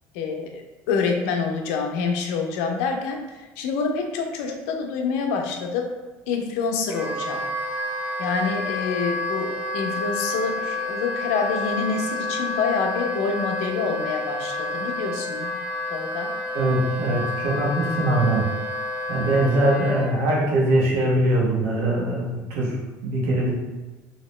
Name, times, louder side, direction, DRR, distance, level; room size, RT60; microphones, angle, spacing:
voice 1, 0.1-0.6 0.9-3.2 3.6-5.9 6.3-7.5 8.2-15.5 15.9-16.3, left 5 dB, 85° left, 3 dB, 0.5 m, -26 dB
Wind instrument woodwind instrument, 6.9-20.1, left 2 dB, 15° right, 0.5 m, -29 dB
voice 2, 16.5-18.4 19.1-23.5, right 1 dB, 85° right, -4 dB, 1.1 m, -22 dB
2.8 x 2.8 x 3.1 m, 1.2 s
supercardioid pair, 105°, 7 cm